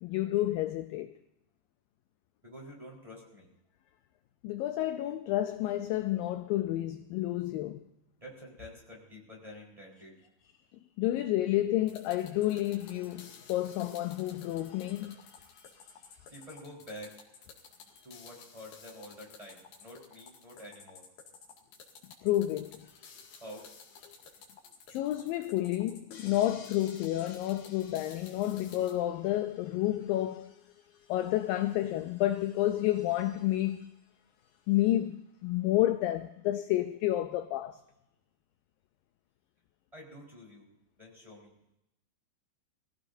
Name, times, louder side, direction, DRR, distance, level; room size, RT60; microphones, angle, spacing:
voice 1, 0.0-1.1 4.4-7.8 11.0-16.0 17.9-18.0 22.2-23.4 24.9-30.6 31.1-33.9 34.7-37.8, left 14 dB, 80° left, 2.0 m, -30 dB
voice 2, 2.4-3.5 8.2-10.2 16.3-17.2 18.0-21.1 23.4-23.7 39.9-40.7 41.0-41.5, equal, 10° right, 4.1 m, -48 dB
sound 1, 11.9-29.0, left 5 dB, 65° left, 4.0 m, -53 dB
23.0 x 16.0 x 2.7 m
omnidirectional pair, 4.7 m